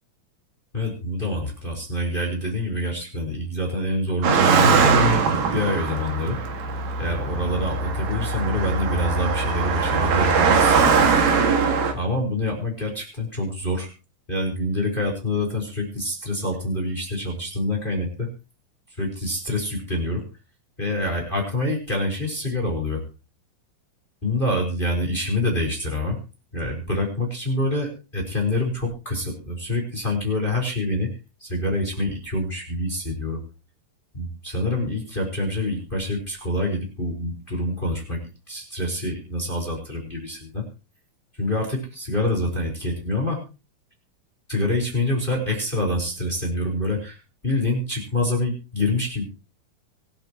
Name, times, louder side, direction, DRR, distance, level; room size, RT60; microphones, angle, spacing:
voice 1, 0.7-6.4 7.0-11.1 11.9-13.9 14.3-18.3 19.0-20.2 20.8-23.0 24.2-26.2 26.5-31.1 31.4-33.4 34.1-40.6 41.4-43.4 44.5-49.2, left 1 dB, 15° left, 1 dB, 4.4 m, -26 dB
Car passing by, 4.2-11.9, right 5 dB, 65° right, 3.5 m, -21 dB
25.0 x 9.0 x 3.0 m, 0.31 s
omnidirectional pair, 4.3 m